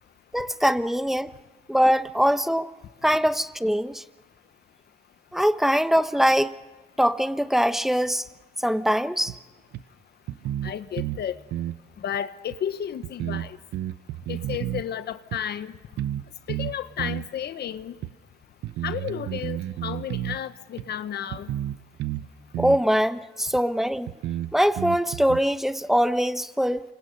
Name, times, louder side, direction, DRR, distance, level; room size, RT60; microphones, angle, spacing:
voice 1, 0.3-1.3 1.7-2.7 3.0-4.0 5.3-6.5 7.0-8.2 8.6-9.3 22.6-24.1 24.5-26.8, equal, ahead, 1.1 m, -22 dB
sound 1, 9.3-9.4 9.7-9.8 10.3-11.2 11.5-11.8 12.5-12.6 13.0-14.8 15.3-15.4 16.0-16.2 16.5-17.3 18.0-18.1 18.6-20.4 20.8-20.9 21.3-22.3 22.5-22.8 23.5-23.6 24.1-25.4, right 12 dB, 90° right, 0.7 m, -31 dB
voice 2, 10.6-11.3 12.0-13.6 14.3-15.7 16.5-17.9 18.8-21.5, left 9 dB, 70° left, 1.2 m, -32 dB
28.5 x 26.0 x 5.4 m
cardioid pair, 75°, 18 cm